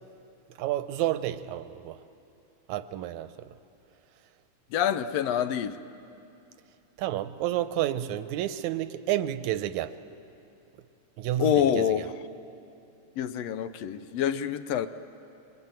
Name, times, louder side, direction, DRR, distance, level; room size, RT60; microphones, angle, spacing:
voice 1, 0.6-2.0 2.7-3.5 7.0-9.9 11.2-11.9, right 13 dB, 85° right, 12 dB, 2.1 m, -30 dB
voice 2, 4.7-5.8 11.4-12.1 13.2-14.9, left 9 dB, 70° left, 11 dB, 1.8 m, -26 dB
26.0 x 24.0 x 9.0 m, 2.8 s
omnidirectional pair, 3.3 m